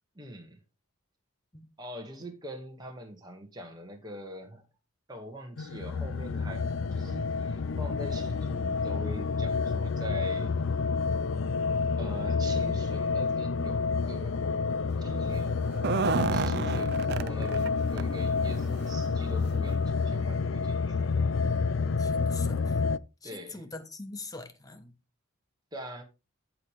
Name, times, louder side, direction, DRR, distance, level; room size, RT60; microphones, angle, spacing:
voice 1, 0.1-0.6 1.8-4.6 5.1-10.6 12.0-14.4 15.0-15.6 16.3-21.3 23.2-23.6 25.7-26.0, equal, 20° right, 1.9 m, -43 dB
sound 1, 5.6-23.0, left 4 dB, 65° left, 0.4 m, -29 dB
sound 2, 15.7-17.7 18.0-18.1 18.5-18.7 19.5-19.6 20.0-20.1, right 5 dB, 50° right, 0.5 m, -30 dB
voice 2, 22.0-22.8 23.2-24.9, left 3 dB, 15° left, 1.1 m, -43 dB
15.0 x 5.0 x 3.4 m
head